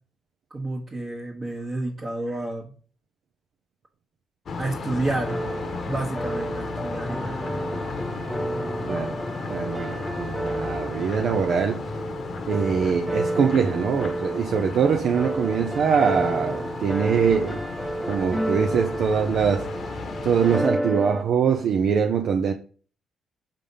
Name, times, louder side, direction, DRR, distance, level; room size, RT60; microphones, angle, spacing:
voice 1, 0.5-2.7 4.6-5.4 5.9-7.4, right 2 dB, 30° right, 1.3 m, -30 dB
sound 1, 4.5-20.6, left 4 dB, 50° left, 0.9 m, -34 dB
sound 2, 5.3-21.2, right 1 dB, 5° right, 0.5 m, -31 dB
voice 2, 9.5-11.9 12.5-17.6 18.1-19.9 20.2-22.5, right 6 dB, 65° right, 0.6 m, -23 dB
5.7 x 3.4 x 5.3 m
cardioid pair, 90°, 0 cm